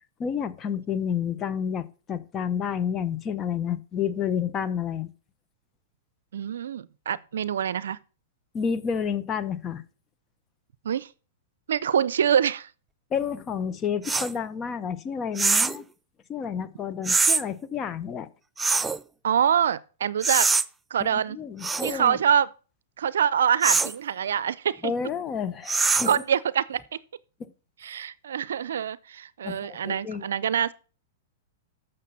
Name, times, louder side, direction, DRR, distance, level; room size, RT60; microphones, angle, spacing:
voice 1, 0.2-5.1 8.5-9.8 13.1-15.8 16.3-18.3 21.0-22.2 24.8-26.1 29.4-30.2, left 7 dB, 25° left, 0.8 m, -30 dB
voice 2, 6.3-8.0 10.8-11.1 11.7-12.7 19.2-20.5 20.9-21.4 21.8-22.5 23.0-24.9 25.9-27.0 27.8-30.7, right 8 dB, 80° right, 0.5 m, -25 dB
sound 1, 14.1-14.3 15.4-15.8 17.1-17.4 18.6-19.0 20.2-20.7 21.6-22.0 23.6-24.0 25.7-26.2, right 4 dB, 10° right, 0.3 m, -23 dB
7.5 x 6.5 x 5.6 m
hypercardioid pair, 120°, 0 cm